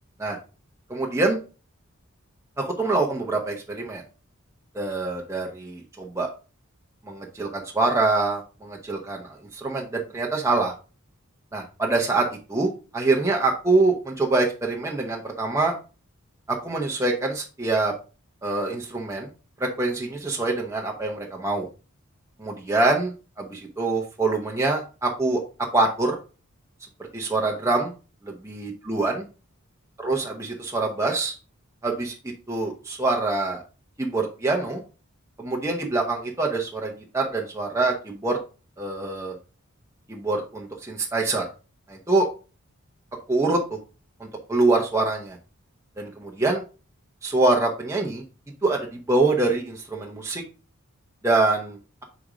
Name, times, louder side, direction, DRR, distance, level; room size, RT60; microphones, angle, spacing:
voice 1, 0.9-1.4 2.6-4.0 4.7-6.3 7.1-10.7 11.5-15.7 16.5-17.9 18.4-19.3 19.6-21.7 22.4-25.4 25.7-26.2 27.1-27.9 28.2-29.2 30.0-31.3 31.8-32.1 32.5-33.6 34.0-34.8 35.4-38.4 38.8-39.3 40.1-41.4 41.9-42.3 43.3-43.8 44.2-45.4 46.0-46.6 47.2-48.2 48.6-48.8 49.1-50.4 51.2-51.8, right 3 dB, 15° right, -1 dB, 0.7 m, -25 dB
5.0 x 4.2 x 4.9 m, 0.34 s
head